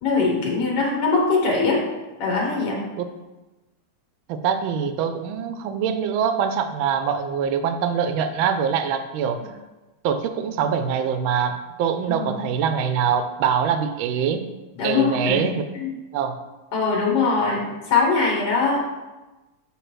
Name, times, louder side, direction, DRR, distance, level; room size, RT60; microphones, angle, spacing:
voice 1, 0.0-1.8 2.2-2.8 12.1-12.3 14.8-16.0 16.7-18.8, left 4 dB, 50° left, -2 dB, 1.8 m, -22 dB
voice 2, 4.3-9.4 10.0-14.4 14.8-15.6 16.1-16.4, right 7 dB, 75° right, 9 dB, 1.4 m, -24 dB
7.2 x 3.6 x 6.1 m, 1.1 s
omnidirectional pair, 2.4 m